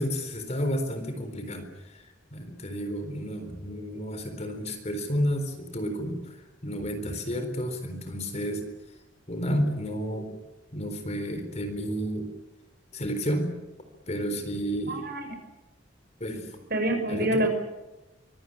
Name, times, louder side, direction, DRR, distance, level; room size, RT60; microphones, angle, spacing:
voice 1, 0.0-8.6 9.3-10.3 10.7-12.3 12.9-13.6 14.1-15.0 16.2-16.6 17.1-17.5, equal, 35° left, 7 dB, 4.1 m, -31 dB
voice 2, 14.9-15.3 16.7-17.5, right 1 dB, 55° right, 4 dB, 6.2 m, -26 dB
24.5 x 18.0 x 9.9 m, 1.1 s
head